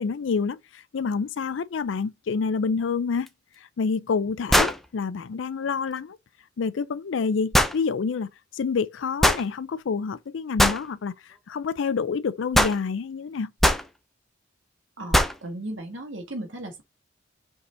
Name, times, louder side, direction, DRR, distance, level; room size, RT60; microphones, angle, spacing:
voice 1, 0.0-3.3 3.6-6.2 6.6-13.5, left 5 dB, 80° left, 0.4 m, -28 dB
sound 1, 3.3-3.4 4.5-4.9 7.5-7.8 9.2-9.5 10.6-10.8 12.5-12.8 13.6-13.9 15.1-15.4, equal, ahead, 0.6 m, -20 dB
voice 2, 15.0-16.8, right 1 dB, 80° right, 1.6 m, -36 dB
5.3 x 4.7 x 3.8 m
head